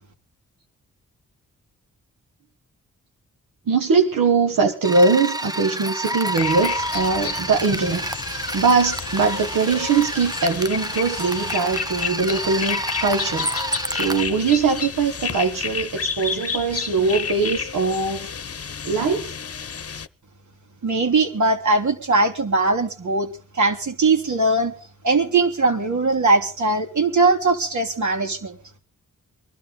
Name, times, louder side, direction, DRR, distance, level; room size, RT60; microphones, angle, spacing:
voice 1, 3.7-18.3 18.8-19.4, right 4 dB, 85° right, 4 dB, 1.6 m, -21 dB
sound 1, 4.8-14.2, right 1 dB, 10° right, 0.9 m, -29 dB
sound 2, 6.3-20.1, left 6 dB, 45° left, 0.9 m, -31 dB
voice 2, 20.8-23.3 23.5-24.7 25.0-28.6, right 3 dB, 60° right, 4 dB, 3.3 m, -20 dB
23.0 x 12.5 x 3.9 m, 0.39 s
cardioid pair, 55°, 32 cm